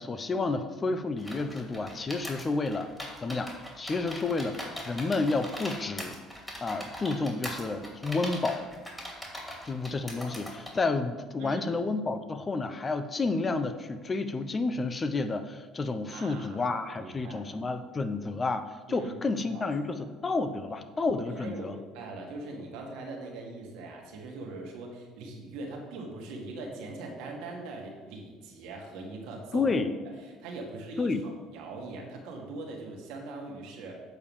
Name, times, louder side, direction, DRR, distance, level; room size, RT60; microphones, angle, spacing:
voice 1, 0.0-2.9 3.2-6.2 6.6-8.7 9.6-21.7 29.5-29.9 31.0-31.2, left 3 dB, 25° left, 10 dB, 0.7 m, -30 dB
sound 1, 1.2-10.8, equal, 10° left, 2.5 m, -40 dB
voice 2, 11.4-11.8 16.1-17.5 18.9-19.7 20.3-20.4 21.4-29.7 30.4-34.0, right 2 dB, 80° right, 1 dB, 1.9 m, -41 dB
8.0 x 4.8 x 7.1 m, 1.4 s
supercardioid pair, 100°, 0 cm